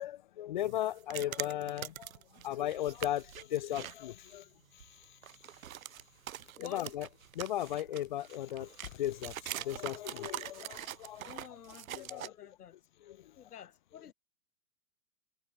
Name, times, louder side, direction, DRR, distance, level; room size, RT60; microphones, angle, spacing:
voice 1, 0.0-2.1 2.4-4.5 6.6-7.1 7.3-11.4 11.9-12.3 13.0-13.3, left 12 dB, 30° left, 0.5 m, -36 dB
sound 1, 0.6-4.0 4.3-4.4 4.8-12.3, right 11 dB, 55° right, 1.4 m, -44 dB
sound 2, 5.2-5.3 5.8-5.9 6.3-12.3, left 14 dB, 50° left, 5.3 m, -59 dB
voice 2, 6.6-6.9 11.3-12.8 13.4-14.1, left 9 dB, 65° left, 2.5 m, -50 dB
hypercardioid pair, 125°, 48 cm